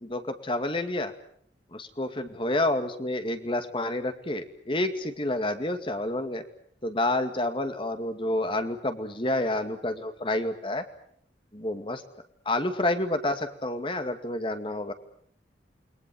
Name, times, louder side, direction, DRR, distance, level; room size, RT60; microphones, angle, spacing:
voice 1, 0.0-1.1 1.7-6.4 6.8-10.9 11.5-12.0 12.5-14.9, left 1 dB, 30° left, 8 dB, 2.2 m, -29 dB
29.0 x 22.0 x 7.7 m, 0.64 s
head